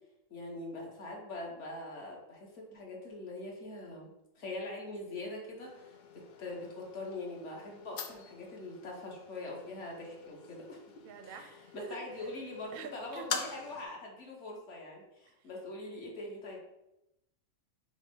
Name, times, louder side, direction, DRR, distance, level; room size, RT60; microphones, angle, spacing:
voice 1, 0.3-4.1 4.3-10.8 11.2-16.6, left 2 dB, 60° left, -1 dB, 1.3 m, -43 dB
sound 1, 5.6-13.9, left 5 dB, 85° left, 0.4 m, -45 dB
voice 2, 11.0-12.3 12.7-13.4, right 5 dB, 60° right, 7 dB, 0.6 m, -46 dB
5.8 x 2.1 x 4.3 m, 0.88 s
omnidirectional pair, 1.4 m